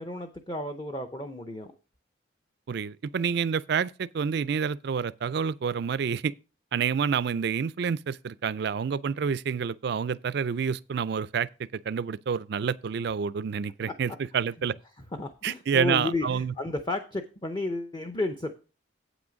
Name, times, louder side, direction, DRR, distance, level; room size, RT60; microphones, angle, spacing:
voice 1, 0.0-1.7 15.0-18.5, left 2 dB, 20° left, 0.7 m, -32 dB
voice 2, 2.7-6.3 6.7-14.8 15.4-16.5, right 6 dB, 55° right, 0.3 m, -28 dB
8.4 x 6.1 x 5.1 m
head